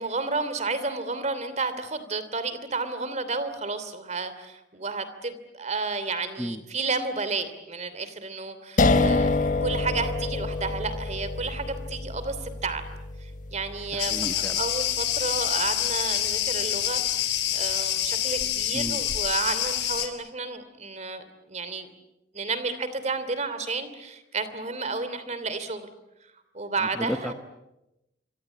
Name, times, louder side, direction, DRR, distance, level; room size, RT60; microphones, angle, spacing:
voice 1, 0.0-12.8 13.2-21.9 22.3-25.9 26.5-27.3, right 3 dB, 40° right, 12 dB, 2.9 m, -31 dB
sound 1, 8.8-15.7, left 3 dB, 45° left, 1.5 m, -27 dB
voice 2, 13.9-14.6 18.7-19.0 27.0-27.3, equal, 5° left, 6 dB, 1.1 m, -32 dB
Cricket, 14.0-20.1, left 11 dB, 70° left, 3.8 m, -27 dB
27.5 x 25.5 x 8.4 m, 0.93 s
head